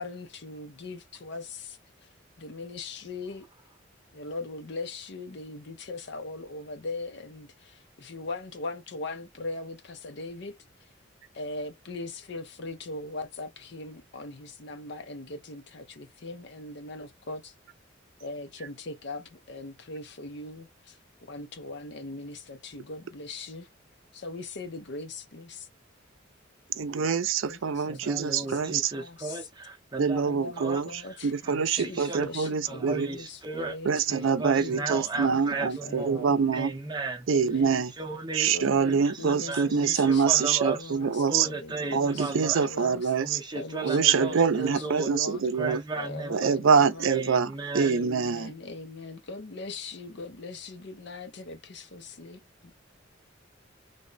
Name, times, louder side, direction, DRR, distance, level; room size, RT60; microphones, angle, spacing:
voice 1, 0.0-1.8 2.4-3.4 4.1-10.6 11.3-17.5 18.2-23.7 24.1-25.7 27.5-28.6 28.9-29.4 30.2-34.0 34.6-36.6 37.3-37.8 38.5-43.1 43.5-45.5 46.0-47.2 47.8-52.7, left 2 dB, 60° left, 0.6 m, -40 dB
voice 2, 26.7-28.9 30.0-30.9 31.2-33.1 33.9-36.7 37.3-37.9 38.3-41.5 41.9-43.4 43.8-45.8 46.3-48.5, right 6 dB, 80° right, 0.5 m, -25 dB
voice 3, 27.9-30.2 30.6-31.2 31.4-33.8 34.1-37.3 38.0-38.6 38.9-41.0 41.3-42.7 43.2-45.1 45.5-46.5 47.0-48.1, right 3 dB, 20° right, 0.7 m, -35 dB
3.4 x 2.1 x 3.9 m
head